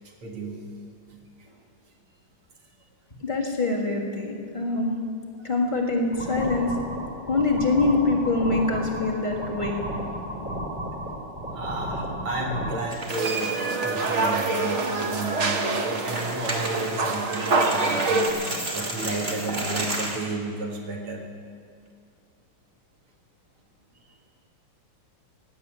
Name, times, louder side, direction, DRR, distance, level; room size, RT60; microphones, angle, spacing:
voice 1, 0.0-0.6 5.4-5.5 11.5-21.2, right 2 dB, 90° right, 0 dB, 2.9 m, -32 dB
voice 2, 3.2-5.0 5.4-6.8 7.3-9.8, left 3 dB, 25° left, -4 dB, 1.7 m, -24 dB
sound 1, 6.1-12.8, right 1 dB, 5° right, 2.2 m, -33 dB
sound 2, 12.9-13.7 14.1-14.2 14.7-14.8 15.9-20.3, right 1 dB, 30° right, 1.8 m, -32 dB
sound 3, 13.1-18.3, right 3 dB, 45° right, 0.9 m, -26 dB
16.5 x 7.7 x 9.3 m, 2.2 s
omnidirectional pair, 2.3 m